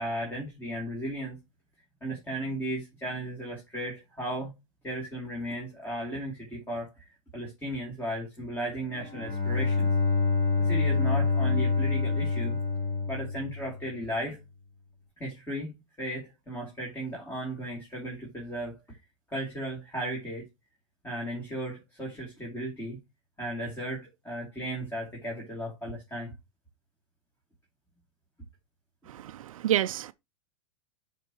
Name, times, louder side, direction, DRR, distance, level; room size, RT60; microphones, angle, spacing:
voice 1, 0.0-1.4 2.0-4.5 4.8-9.9 10.6-12.6 13.1-14.4 15.2-19.0 19.3-20.5 21.0-23.0 23.4-26.3, right 1 dB, 10° left, 2.9 m, -35 dB
Bowed string instrument, 9.0-14.0, left 4 dB, 30° left, 2.9 m, -27 dB
voice 2, 29.1-30.1, right 12 dB, 85° right, 0.4 m, -29 dB
11.0 x 4.4 x 3.0 m
hypercardioid pair, 125°, 17 cm